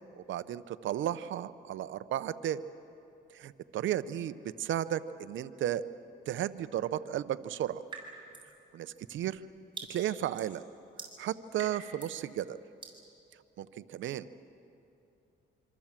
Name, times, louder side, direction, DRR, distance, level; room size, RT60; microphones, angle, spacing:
voice 1, 0.2-2.6 3.3-5.8 6.3-7.8 8.7-9.4 9.9-10.6 11.2-12.6 13.6-14.3, right 11 dB, 75° right, 13 dB, 0.8 m, -34 dB
sound 1, 7.9-8.6 8.9-12.2 12.8-13.0, right 4 dB, 25° right, 6.1 m, -46 dB
26.0 x 25.5 x 7.5 m, 2.8 s
cardioid pair, 90°, 20 cm